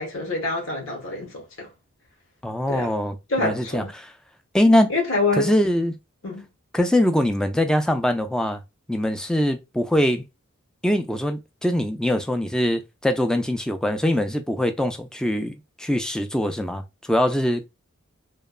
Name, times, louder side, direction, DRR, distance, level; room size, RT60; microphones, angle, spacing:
voice 1, 0.0-1.7 2.7-2.9 3.3-3.9 4.9-5.5 6.2-6.5, left 3 dB, 70° left, 1.2 m, -26 dB
voice 2, 2.4-3.2 3.4-4.1 4.5-4.9 5.4-5.9 6.7-8.6 8.9-10.2 10.8-17.7, left 1 dB, 5° left, 0.3 m, -22 dB
2.9 x 2.2 x 2.3 m
head